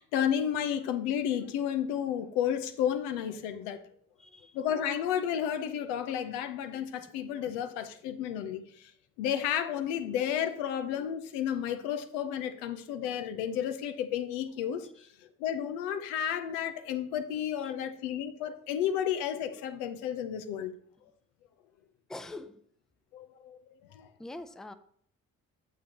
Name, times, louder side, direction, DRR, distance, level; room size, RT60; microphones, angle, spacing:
voice 1, 0.0-3.8 4.5-8.9 9.2-15.1 15.4-20.7 23.1-24.1, left 9 dB, 75° left, 0.7 m, -32 dB
voice 2, 4.2-4.6 17.6-17.7 22.1-22.6 24.2-24.7, left 2 dB, ahead, 0.5 m, -43 dB
8.3 x 7.2 x 2.9 m
hypercardioid pair, 40°, 39 cm